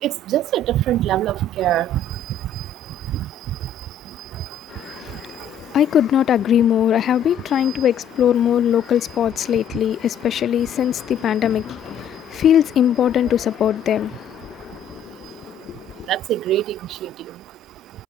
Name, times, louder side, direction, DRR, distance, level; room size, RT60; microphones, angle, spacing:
voice 1, 0.0-1.9 16.1-16.6, right 14 dB, 80° right, 4.5 m, -21 dB
voice 2, 4.7-14.7 15.0-15.2 15.7-16.1, left 10 dB, 65° left, 1.3 m, -20 dB
supercardioid pair, 70°, 0 cm